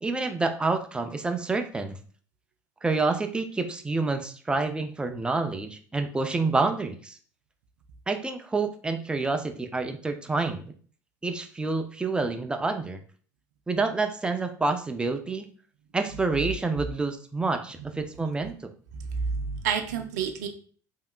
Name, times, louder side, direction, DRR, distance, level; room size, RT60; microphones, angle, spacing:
voice 1, 0.0-2.0 2.8-7.2 8.1-10.7 11.2-13.0 13.7-15.5 15.9-18.7, right 3 dB, 10° right, 6 dB, 0.4 m, -28 dB
voice 2, 18.9-20.5, right 6 dB, 65° right, 5 dB, 0.5 m, -29 dB
3.2 x 2.7 x 2.3 m, 0.43 s
figure-of-eight pair, 65°, 10 cm